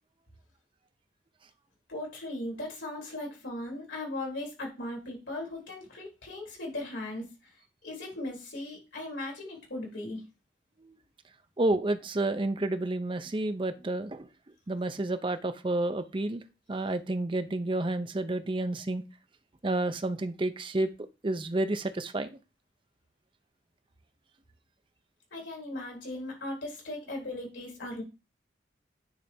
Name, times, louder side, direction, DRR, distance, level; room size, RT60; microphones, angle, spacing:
voice 1, 1.9-7.5 7.8-10.2 25.3-28.0, left 1 dB, 85° left, 0 dB, 3.5 m, -38 dB
voice 2, 11.6-14.3 14.7-16.4 16.7-19.0 19.6-20.9 21.2-22.4, right 2 dB, 25° right, 10 dB, 0.5 m, -30 dB
9.3 x 3.4 x 4.3 m, 0.29 s
head